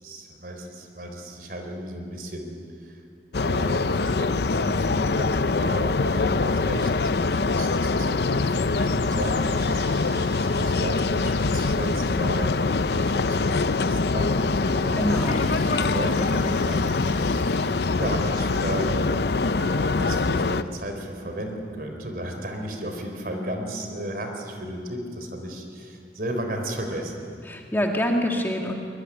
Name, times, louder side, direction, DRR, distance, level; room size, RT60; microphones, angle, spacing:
voice 1, 0.0-2.6 2.8-3.0 3.3-12.6 12.9-15.1 15.4-17.6 18.0-19.0 19.5-27.1, right 1 dB, 55° right, 4 dB, 4.0 m, -34 dB
sound 1, 3.3-20.6, left 3 dB, 65° left, 0.6 m, -24 dB
sound 2, 9.0-14.2, right 2 dB, 75° right, 8.0 m, -50 dB
Water / Toilet flush, 14.1-19.1 19.4-19.5 20.3-20.4 21.6-21.7, left 2 dB, 45° left, 2.9 m, -39 dB
voice 2, 15.0-15.5 27.5-28.7, equal, 10° left, 1 dB, 1.8 m, -25 dB
23.0 x 21.5 x 10.0 m, 2.4 s
head